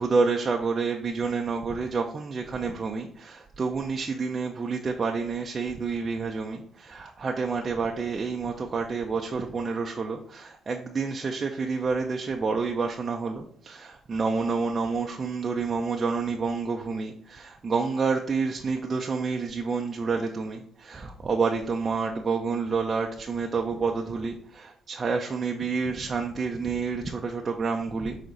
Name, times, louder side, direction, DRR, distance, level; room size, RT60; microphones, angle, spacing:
voice 1, 0.0-28.2, right 4 dB, 35° right, 2 dB, 0.7 m, -29 dB
6.3 x 4.1 x 4.0 m, 0.65 s
cardioid pair, 90°, 0 cm